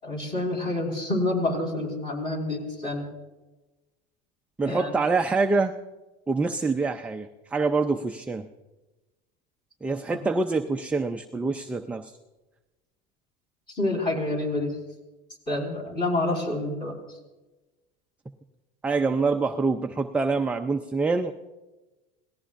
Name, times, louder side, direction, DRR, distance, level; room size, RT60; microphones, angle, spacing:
voice 1, 0.0-3.1 4.6-4.9 10.1-10.2 13.7-14.8 15.5-16.9, left 2 dB, 20° left, 0 dB, 4.7 m, -28 dB
voice 2, 4.6-5.7 6.3-8.5 9.8-12.2 18.8-21.3, right 3 dB, 5° right, 5 dB, 0.4 m, -25 dB
28.0 x 18.5 x 2.5 m, 1.1 s
supercardioid pair, 150°, 20 cm